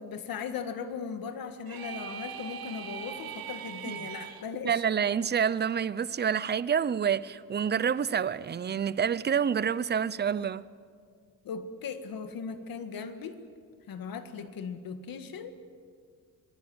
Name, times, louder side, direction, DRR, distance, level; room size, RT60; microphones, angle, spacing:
voice 1, 0.0-4.7 11.4-13.4 13.9-15.5, left 6 dB, 65° left, 2.0 m, -38 dB
sound 1, 1.7-4.4, right 8 dB, 70° right, 1.6 m, -40 dB
voice 2, 4.6-10.6, right 7 dB, 30° right, 0.6 m, -28 dB
26.5 x 21.0 x 7.9 m
cardioid pair, 150°, 37 cm